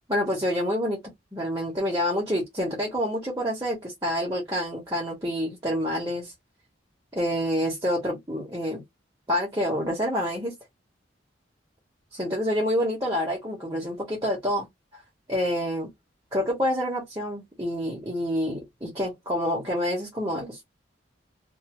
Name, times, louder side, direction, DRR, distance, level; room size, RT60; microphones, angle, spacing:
voice 1, 0.1-1.0 1.3-6.3 7.1-8.8 9.3-10.5 12.1-14.7 14.9-15.0 15.3-15.9 16.3-20.7, equal, 20° right, 1.0 m, -27 dB
2.6 x 2.5 x 3.0 m
head